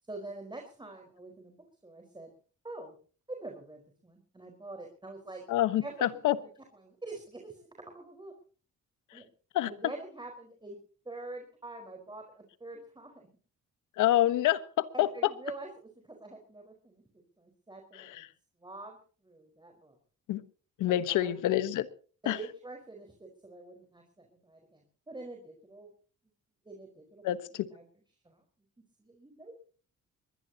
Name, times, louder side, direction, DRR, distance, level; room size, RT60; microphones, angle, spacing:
voice 1, 0.0-1.5 1.8-2.3 2.6-3.0 3.3-5.4 5.8-7.7 7.9-8.3 9.1-9.3 9.7-10.8 11.0-13.3 14.9-18.3 18.6-20.0 20.9-21.4 22.2-25.9 26.6-27.9 28.2-28.4 29.0-29.6, right 2 dB, 15° right, 4.7 m, -46 dB
voice 2, 5.5-6.3 9.5-9.7 14.0-15.1 20.3-20.4 20.8-21.9 22.3-22.4 27.2-27.4, left 13 dB, 85° left, 1.3 m, -26 dB
22.0 x 20.0 x 2.9 m
cardioid pair, 90°, 30 cm